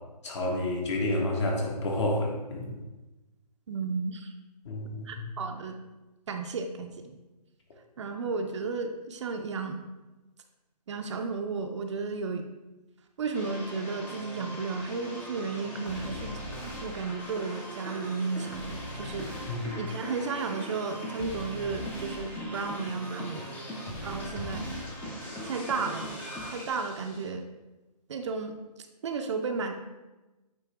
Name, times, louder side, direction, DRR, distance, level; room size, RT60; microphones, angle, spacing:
voice 1, 0.2-2.7 4.6-5.2 19.5-19.8, left 1 dB, 45° left, 0 dB, 1.5 m, -30 dB
voice 2, 3.7-4.3 5.0-5.8 6.3-7.2 8.0-9.8 10.9-12.5 13.2-16.3 16.6-19.3 19.8-23.6 24.0-24.7 25.4-26.1 26.5-27.5 28.1-28.6 29.0-29.7, right 4 dB, 45° right, 5 dB, 0.5 m, -33 dB
sound 1, 13.3-27.3, equal, 10° left, 0.6 m, -39 dB
9.1 x 3.4 x 3.4 m, 1.1 s
figure-of-eight pair, 145°, 21 cm